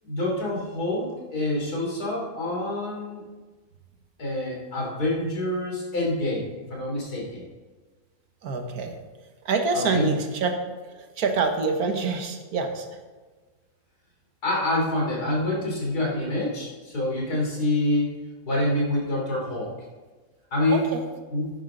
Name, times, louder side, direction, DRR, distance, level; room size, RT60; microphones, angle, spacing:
voice 1, 0.0-3.2 4.2-7.4 9.7-10.2 14.4-18.1 18.5-19.7 20.5-20.9 21.3-21.5, left 1 dB, 90° left, -3 dB, 3.7 m, -26 dB
voice 2, 8.4-8.9 9.5-10.5 11.2-12.9 20.7-21.0, right 4 dB, 75° right, 5 dB, 1.7 m, -26 dB
11.0 x 10.0 x 3.9 m, 1.3 s
omnidirectional pair, 1.6 m